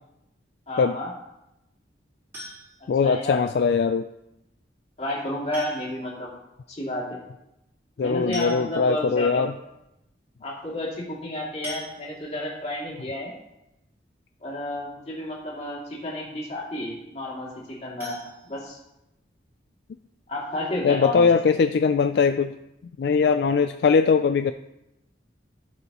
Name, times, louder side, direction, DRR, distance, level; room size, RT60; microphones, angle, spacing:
voice 1, 0.7-1.1 3.0-3.4 5.0-6.3 6.7-7.2 8.0-9.4 10.4-13.3 14.4-18.8 20.3-21.3, left 1 dB, 35° left, -4 dB, 2.6 m, -31 dB
sound 1, 2.3-3.0 4.4-4.5 5.5-6.1 6.4-6.5 6.8-6.9 7.9-8.0 8.3-9.0 9.6-9.7 10.0-10.2 11.6-12.5 17.9-19.2 19.5-19.6 20.1-20.2 20.5-20.6, equal, 15° right, 3.3 m, -41 dB
voice 2, 2.9-4.1 8.0-9.5 20.8-22.5 23.0-24.5, left 5 dB, 65° left, 9 dB, 0.3 m, -21 dB
14.5 x 6.8 x 3.0 m, 0.89 s
head